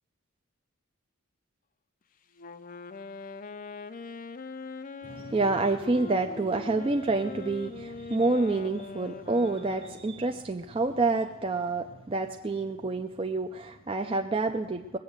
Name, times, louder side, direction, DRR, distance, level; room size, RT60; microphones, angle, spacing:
Wind instrument woodwind instrument, 2.4-10.2, left 4 dB, 40° left, 0.5 m, -42 dB
voice 1, 5.0-15.0, right 3 dB, 25° right, 4 dB, 0.5 m, -28 dB
20.5 x 8.1 x 6.4 m, 1.2 s
head